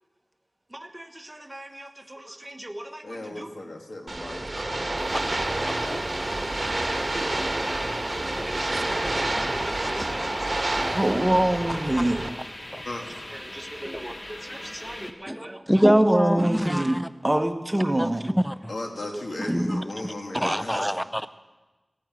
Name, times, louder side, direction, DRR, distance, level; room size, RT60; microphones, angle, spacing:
voice 1, 0.7-3.5 6.2-6.5 7.2-12.3 12.8-12.9 13.3-18.4 19.1-19.6 20.3-20.5, right 1 dB, 25° right, 6 dB, 1.3 m, -29 dB
voice 2, 3.0-4.6 4.9-5.0 8.3-8.4 9.4-9.6 12.8-13.0 18.7-20.9, left 2 dB, 85° left, 2 dB, 2.2 m, -36 dB
sound 1, 4.1-12.3, right 2 dB, 50° right, 1.4 m, -28 dB
sound 2, 5.0-15.1, left 1 dB, 45° left, 1.5 m, -40 dB
voice 3, 15.3-17.1 18.0-18.1 18.4-18.7 19.5-21.3, equal, ahead, 13 dB, 0.4 m, -25 dB
17.0 x 9.0 x 9.1 m, 1.2 s
wide cardioid pair, 45°, 0 cm